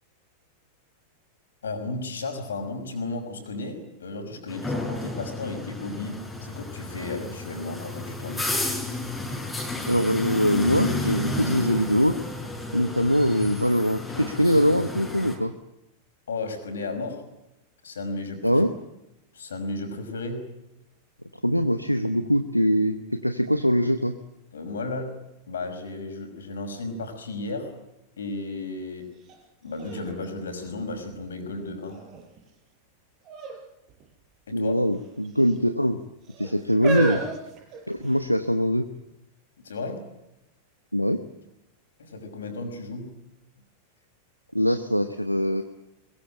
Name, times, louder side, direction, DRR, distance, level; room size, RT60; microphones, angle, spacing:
voice 1, 1.6-8.6 16.3-17.2 17.8-18.6 19.3-20.5 24.5-25.2 25.5-27.7 28.2-29.1 29.6-32.0 34.5-34.8 39.6-40.1 42.0-43.2, left 3 dB, 70° left, 6 dB, 5.6 m, -34 dB
sound 1, 4.5-15.4, left 2 dB, 5° left, 6.6 m, -32 dB
voice 2, 9.9-12.2 12.7-15.5 18.4-18.7 21.4-24.1 34.5-36.0 36.4-37.2 37.9-38.9 40.9-41.2 44.5-45.6, equal, 90° left, 8 dB, 1.0 m, -22 dB
sound 2, 29.2-29.3 29.8-31.3 31.9-32.4 33.2-33.6 33.9-34.0 34.9-35.6 36.3-38.3 39.1-39.2, right 4 dB, 35° right, 6.8 m, -33 dB
22.5 x 22.0 x 8.9 m, 0.92 s
figure-of-eight pair, 90°, 0 cm